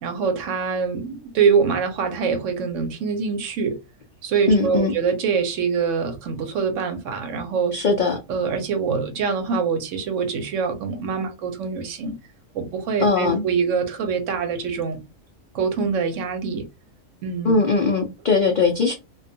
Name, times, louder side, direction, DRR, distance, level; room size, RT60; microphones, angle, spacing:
voice 1, 0.0-3.8 4.2-7.7 8.3-12.1 12.5-15.0 15.5-16.6 17.2-17.5, right 5 dB, 70° right, 0.9 m, -24 dB
voice 2, 4.5-4.9 7.7-8.2 13.0-13.4 17.4-18.9, left 3 dB, 85° left, 0.4 m, -20 dB
2.4 x 2.2 x 2.6 m
omnidirectional pair, 1.4 m